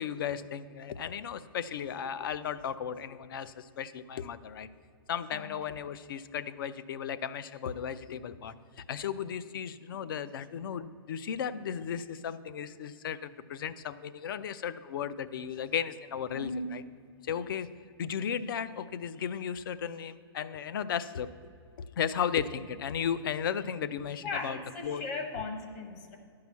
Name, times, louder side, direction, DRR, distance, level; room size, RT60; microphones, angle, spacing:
voice 1, 0.0-4.7 5.1-16.8 17.3-17.7 18.0-21.3 21.8-25.0, left 8 dB, 55° left, 15 dB, 0.5 m, -35 dB
voice 2, 16.3-16.8 24.2-26.2, left 3 dB, 30° left, 5 dB, 1.1 m, -37 dB
11.0 x 4.8 x 8.2 m, 2.3 s
hypercardioid pair, 170°, 13 cm